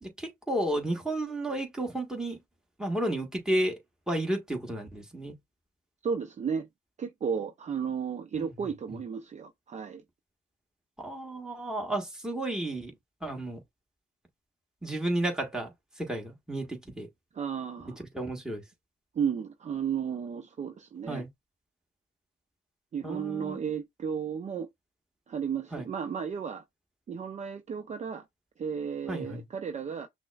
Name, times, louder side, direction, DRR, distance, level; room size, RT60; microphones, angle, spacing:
voice 1, 0.0-2.4 2.8-3.8 4.1-5.3 8.3-8.4 11.0-12.9 13.2-13.6 14.8-15.7 16.0-17.1 18.1-18.6 21.1-21.3 23.0-23.6 25.7-25.9 29.1-29.4, right 1 dB, 5° right, 1.4 m, -32 dB
voice 2, 6.0-6.7 7.0-10.0 17.3-18.0 19.1-21.2 22.9-24.7 25.3-26.6 27.1-28.2 28.6-30.1, right 7 dB, 35° right, 0.5 m, -33 dB
5.9 x 2.1 x 2.3 m
cardioid pair, 90°, 20 cm